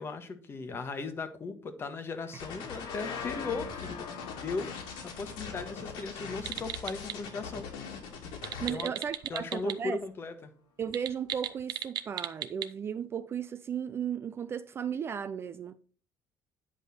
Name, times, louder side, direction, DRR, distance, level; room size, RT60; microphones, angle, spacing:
voice 1, 0.0-7.7 8.7-8.9 9.3-10.5, left 4 dB, 30° left, 1.2 m, -38 dB
sound 1, 2.2-9.7, left 6 dB, 65° left, 1.8 m, -47 dB
sound 2, 2.4-8.7, left 6 dB, 85° left, 2.5 m, -41 dB
sound 3, 6.4-7.2 8.3-9.8 10.0-10.1 10.8-12.7, right 12 dB, 60° right, 0.7 m, -37 dB
voice 2, 8.6-10.0 10.8-15.8, right 8 dB, 30° right, 0.4 m, -35 dB
9.6 x 5.5 x 4.2 m
cardioid pair, 150°, 8 cm